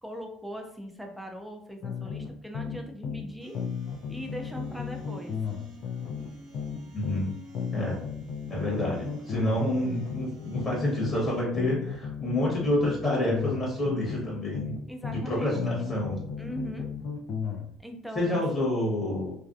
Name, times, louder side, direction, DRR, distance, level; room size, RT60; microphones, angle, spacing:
voice 1, 0.0-3.6 4.1-5.3 14.9-15.9 16.4-16.9 17.8-18.6, equal, ahead, 2 dB, 0.5 m, -40 dB
sound 1, 1.8-3.3 3.5-7.3 7.5-11.3 11.5-15.3 15.5-17.7, left 6 dB, 60° left, 0.4 m, -34 dB
sound 2, 3.4-11.4, equal, 85° right, 0.8 m, -50 dB
voice 2, 6.9-7.3 7.7-8.0 8.5-14.7 15.1-16.2 18.1-19.3, left 1 dB, 30° left, -4 dB, 1.0 m, -28 dB
2.6 x 2.2 x 2.3 m, 0.64 s
supercardioid pair, 100°, 0 cm